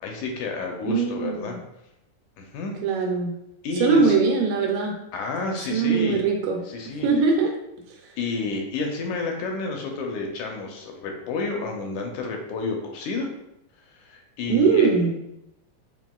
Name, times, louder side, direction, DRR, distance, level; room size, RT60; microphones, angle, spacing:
voice 1, 0.0-1.6 2.4-2.8 3.6-4.1 5.1-6.2 6.7-7.1 8.2-13.3 13.9-15.0, left 3 dB, 80° left, 2 dB, 1.8 m, -30 dB
voice 2, 0.8-1.6 2.8-3.3 3.8-4.9 5.7-6.6 7.0-7.5 14.5-15.2, right 5 dB, 90° right, 0 dB, 2.2 m, -21 dB
7.0 x 2.4 x 2.3 m, 0.84 s
omnidirectional pair, 3.7 m